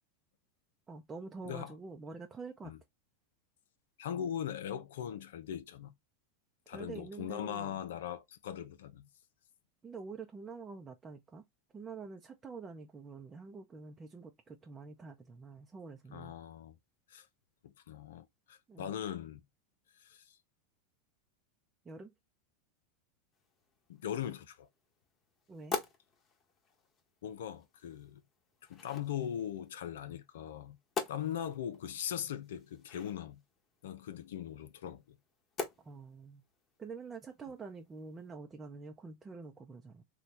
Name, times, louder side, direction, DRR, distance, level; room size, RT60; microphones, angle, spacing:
voice 1, 0.9-2.7 6.7-7.8 9.8-11.4 11.7-16.3 18.7-18.9 21.8-22.1 25.5-25.8 35.8-36.4 36.8-40.0, right 4 dB, 20° right, 0.6 m, -47 dB
voice 2, 4.0-5.9 6.7-9.1 16.1-16.8 17.1-17.3 17.6-19.4 20.0-20.4 23.9-24.7 27.2-28.2 28.7-30.8 31.1-33.4 33.8-35.2, left 9 dB, 80° left, 0.6 m, -40 dB
sound 1, 23.3-38.3, left 5 dB, 30° left, 1.0 m, -47 dB
3.3 x 2.3 x 4.1 m
hypercardioid pair, 105°, 0 cm